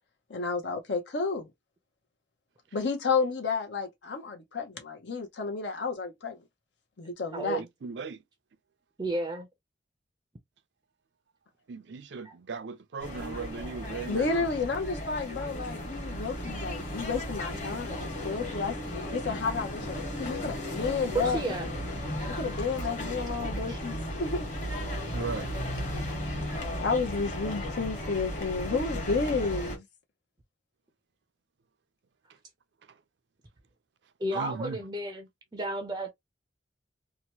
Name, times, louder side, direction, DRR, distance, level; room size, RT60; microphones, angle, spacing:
voice 1, 0.3-1.5 2.7-6.4 7.0-7.6 14.1-18.0 18.2-18.8 19.1-21.6 22.3-24.5 26.8-29.8, left 4 dB, 75° left, 0.7 m, -31 dB
voice 2, 7.5-8.2 11.7-14.4 25.1-25.5 34.3-34.8, right 4 dB, 75° right, 0.5 m, -37 dB
voice 3, 9.0-9.5 12.2-12.3 21.1-21.7 25.6-25.7 34.2-35.3 35.5-36.1, right 2 dB, 20° right, 0.4 m, -32 dB
sound 1, 13.0-29.8, equal, 40° left, 1.2 m, -35 dB
2.8 x 2.1 x 2.8 m
head